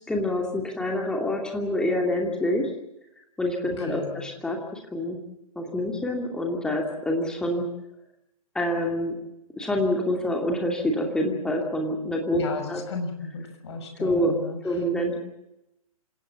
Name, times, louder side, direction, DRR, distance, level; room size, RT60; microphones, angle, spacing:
voice 1, 0.1-2.7 3.4-5.2 5.6-7.6 8.5-9.2 9.6-12.4 12.7-12.8 14.0-14.4 14.6-15.2, left 1 dB, 5° left, 0 dB, 2.7 m, -26 dB
voice 2, 3.8-4.3 12.3-14.6, left 4 dB, 45° left, 5 dB, 6.5 m, -35 dB
27.0 x 18.0 x 7.6 m, 0.88 s
figure-of-eight pair, 125°, 19 cm